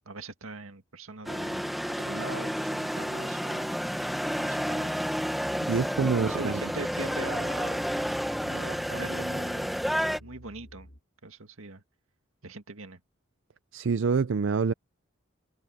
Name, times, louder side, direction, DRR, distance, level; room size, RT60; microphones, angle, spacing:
voice 1, 0.1-5.0 6.0-7.9 8.4-9.8 10.2-10.9 11.2-11.8 12.4-13.0, right 3 dB, 90° right, 2.0 m, -42 dB
sound 1, 1.2-10.2, equal, ahead, 0.9 m, -30 dB
sound 2, 5.4-11.0, equal, 50° left, 7.2 m, -50 dB
voice 2, 5.7-6.6 13.7-14.7, right 5 dB, 65° right, 0.4 m, -26 dB
head